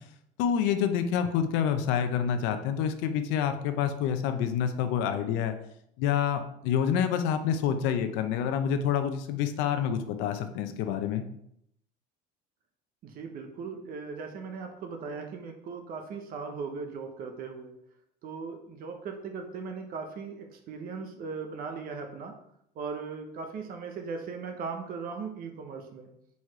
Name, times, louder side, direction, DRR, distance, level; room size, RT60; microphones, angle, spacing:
voice 1, 0.4-5.5 6.0-11.2, left 8 dB, 90° left, 8 dB, 0.6 m, -27 dB
voice 2, 13.0-17.7 18.2-22.4 22.7-26.1, right 5 dB, 50° right, 4 dB, 0.8 m, -38 dB
4.8 x 4.1 x 4.7 m, 0.74 s
cardioid pair, 145°, 19 cm